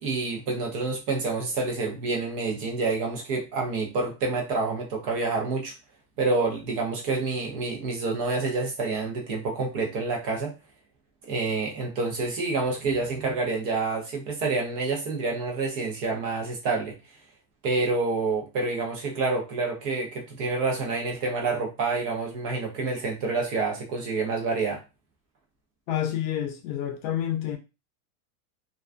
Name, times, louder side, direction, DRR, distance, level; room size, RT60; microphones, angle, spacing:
voice 1, 0.0-5.7 6.2-10.5 11.3-16.9 17.6-24.8, right 3 dB, 35° right, 0.5 m, -28 dB
voice 2, 25.9-27.6, left 11 dB, 60° left, 0.6 m, -28 dB
2.3 x 2.2 x 2.4 m
supercardioid pair, 165°, 47 cm